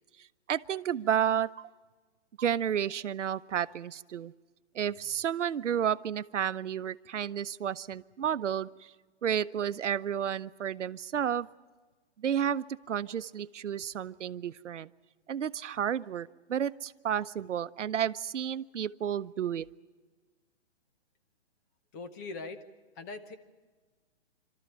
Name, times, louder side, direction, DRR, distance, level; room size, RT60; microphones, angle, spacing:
voice 1, 0.2-1.7 2.4-4.3 4.7-8.9 9.2-11.5 12.2-14.9 15.3-19.7, right 9 dB, 85° right, 15 dB, 0.8 m, -31 dB
voice 2, 21.9-22.6 23.0-23.3, left 3 dB, 15° left, 8 dB, 0.8 m, -41 dB
27.5 x 13.5 x 9.7 m, 1.4 s
hypercardioid pair, 165°, 35 cm